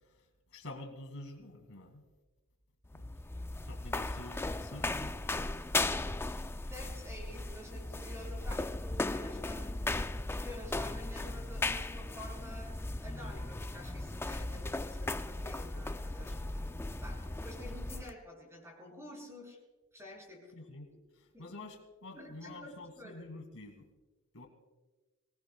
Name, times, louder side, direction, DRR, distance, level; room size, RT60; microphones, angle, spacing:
voice 1, 0.0-2.0 2.9-3.1 3.6-5.1 14.5-14.7 20.5-20.9 21.1-23.9 24.3-24.5, left 2 dB, 65° left, 5 dB, 2.0 m, -48 dB
sound 1, 2.8-18.1, left 2 dB, 10° left, 0.4 m, -37 dB
voice 2, 6.7-10.0 10.2-12.7 13.0-16.7 17.0-19.6 19.9-20.5 21.3-21.6 22.1-23.3, left 1 dB, 10° right, -1 dB, 6.3 m, -50 dB
24.5 x 19.0 x 2.3 m, 1.3 s
head